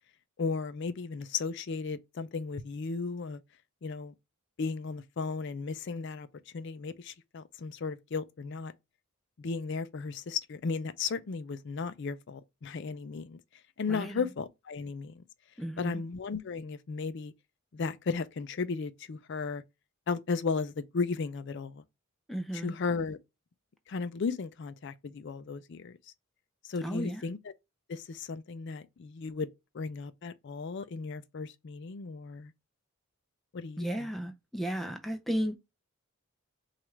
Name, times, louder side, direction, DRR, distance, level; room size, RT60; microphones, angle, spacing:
voice 1, 0.4-3.4 3.8-4.1 4.6-8.7 9.4-13.4 13.8-15.2 15.8-17.3 17.7-19.6 20.1-21.8 22.5-23.2 23.9-26.0 26.6-27.4 27.9-29.5 29.7-32.5 33.5-34.1, left 4 dB, 55° left, 0.4 m, -35 dB
voice 2, 13.9-14.2 15.6-16.0 22.3-22.7 26.8-27.2 33.8-35.6, equal, ahead, 0.5 m, -34 dB
6.1 x 2.4 x 3.2 m
head